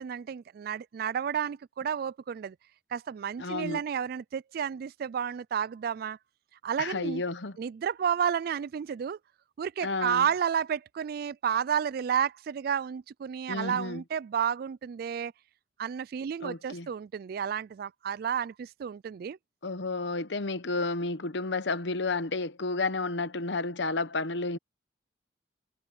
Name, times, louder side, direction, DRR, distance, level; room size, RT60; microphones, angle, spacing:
voice 1, 0.0-2.6 2.9-6.2 6.6-7.2 7.6-9.2 9.6-15.3 15.8-19.4, right 8 dB, 55° right, 0.3 m, -31 dB
voice 2, 3.4-3.8 6.8-7.5 9.8-10.2 13.5-14.0 16.4-16.9 19.6-24.6, left 3 dB, 75° left, 1.0 m, -31 dB
head